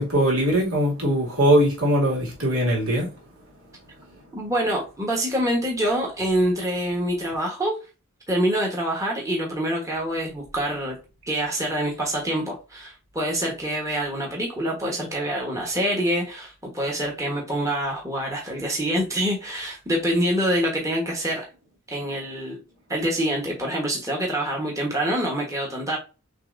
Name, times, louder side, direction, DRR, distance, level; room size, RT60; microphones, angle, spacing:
voice 1, 0.0-3.1, equal, 75° right, 2.4 m, -21 dB
voice 2, 4.3-7.7 8.3-10.9 11.3-21.5 21.9-22.6 22.9-26.0, right 1 dB, 15° right, 1.2 m, -26 dB
6.6 x 3.0 x 2.6 m
head